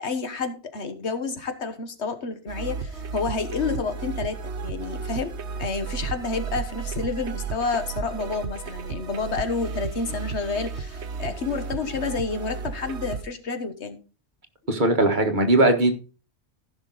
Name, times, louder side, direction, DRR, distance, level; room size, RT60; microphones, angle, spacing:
voice 1, 0.0-5.3 5.6-14.0, left 4 dB, 75° left, 9 dB, 1.6 m, -29 dB
sound 1, 2.5-13.2, right 5 dB, 80° right, 1.2 m, -33 dB
voice 2, 14.7-15.9, right 2 dB, 45° right, 5 dB, 1.6 m, -19 dB
15.0 x 6.0 x 4.0 m, 0.35 s
omnidirectional pair, 1.1 m